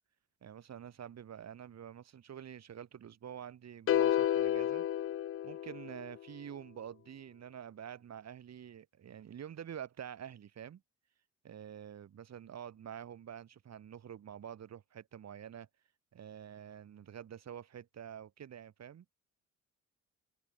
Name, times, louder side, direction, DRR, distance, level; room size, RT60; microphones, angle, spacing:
voice 1, 0.4-4.9 5.4-10.8 11.4-15.7 16.1-19.0, right 9 dB, 60° right, 5.9 m, -47 dB
sound 1, 3.9-6.2, left 11 dB, 45° left, 0.6 m, -31 dB
cardioid pair, 90°, 30 cm